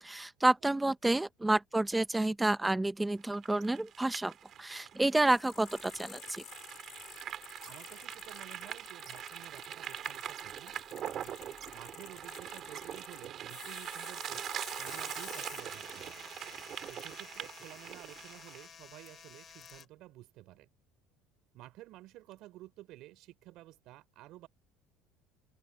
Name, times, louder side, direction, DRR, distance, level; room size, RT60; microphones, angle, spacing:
voice 1, 0.0-4.3 4.6-6.4, right 2 dB, 10° right, 1.2 m, -29 dB
sound 1, 3.2-18.7, right 10 dB, 45° right, 3.9 m, -43 dB
sound 2, 5.2-18.6 19.1-19.2 19.6-19.8, left 13 dB, 55° left, 3.3 m, -52 dB
voice 2, 7.6-11.3 11.7-14.5 14.8-16.2 16.9-20.7 21.5-24.5, right 16 dB, 65° right, 4.4 m, -53 dB
sound 3, 14.8-19.9, left 7 dB, 35° left, 7.4 m, -53 dB
open air
cardioid pair, 120°, 0 cm